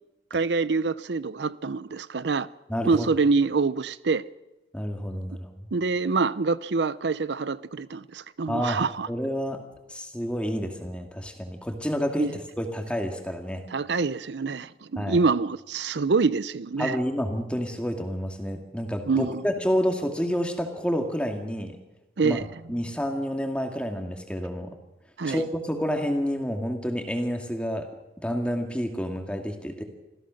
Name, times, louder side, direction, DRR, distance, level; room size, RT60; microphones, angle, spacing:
voice 1, 0.3-2.5 2.9-4.2 5.7-9.1 12.2-12.3 13.7-17.0 19.1-19.4 22.2-22.5 25.2-25.4, right 4 dB, 85° right, 0.6 m, -25 dB
voice 2, 2.7-3.1 4.7-5.7 8.5-8.8 9.1-9.6 9.9-12.3 12.6-13.7 15.0-15.2 16.8-21.8 22.2-22.4 22.7-24.8 25.2-27.9 28.2-29.8, equal, 5° left, 2.2 m, -29 dB
26.5 x 15.5 x 6.5 m
head